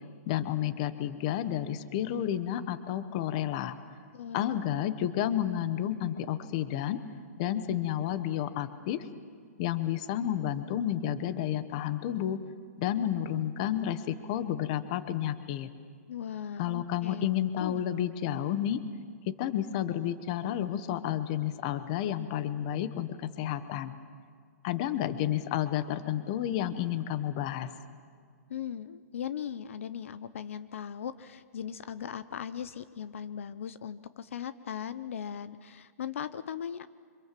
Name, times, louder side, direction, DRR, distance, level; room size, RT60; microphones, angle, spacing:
voice 1, 0.3-3.7 4.3-7.0 7.4-9.1 9.6-12.4 12.8-15.7 16.6-18.8 19.3-24.0 24.6-27.7, left 11 dB, 25° left, 13 dB, 0.9 m, -31 dB
voice 2, 4.1-4.8 16.1-17.8 28.5-36.9, left 8 dB, 55° left, 14 dB, 0.7 m, -39 dB
27.5 x 25.5 x 7.5 m, 2.1 s
hypercardioid pair, 180°, 9 cm